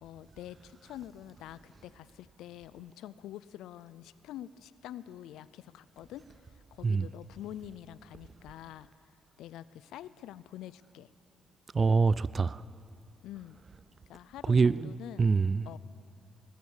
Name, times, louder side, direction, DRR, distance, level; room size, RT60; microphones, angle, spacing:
voice 1, 0.0-8.9 9.4-11.1 13.2-13.6 14.1-15.3 15.7-15.8, left 12 dB, 85° left, 0.4 m, -46 dB
voice 2, 11.7-12.6 14.5-14.9 15.2-15.7, right 4 dB, 35° right, 0.3 m, -25 dB
20.0 x 9.4 x 7.3 m
cardioid pair, 90°, 0 cm